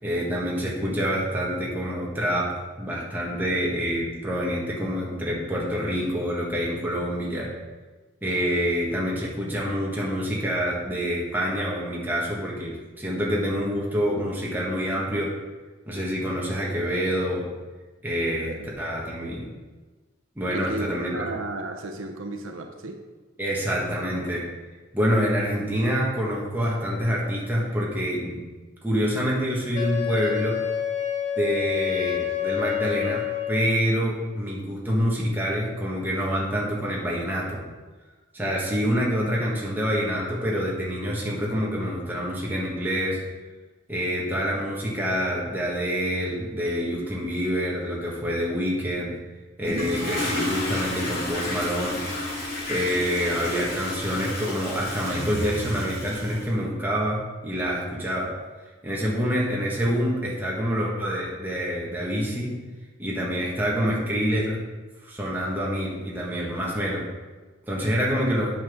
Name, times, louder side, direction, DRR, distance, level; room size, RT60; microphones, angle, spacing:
voice 1, 0.0-7.5 8.2-15.3 15.8-17.5 18.0-18.5 18.8-19.5 20.3-21.1 23.4-24.5 24.9-28.4 28.8-30.6 31.4-37.6 38.3-43.2 43.9-49.1 49.6-52.0 52.7-58.3 58.8-62.5 63.0-64.6 65.0-67.1 67.7-68.5, equal, 10° right, -5 dB, 1.6 m, -26 dB
voice 2, 18.2-18.7 20.5-23.0, right 2 dB, 85° right, 4 dB, 0.8 m, -34 dB
Wind instrument woodwind instrument, 29.7-33.9, left 9 dB, 35° left, 0.9 m, -28 dB
Toilet flush, 49.6-56.5, left 2 dB, 55° left, 2.5 m, -31 dB
8.7 x 6.1 x 3.7 m, 1.3 s
head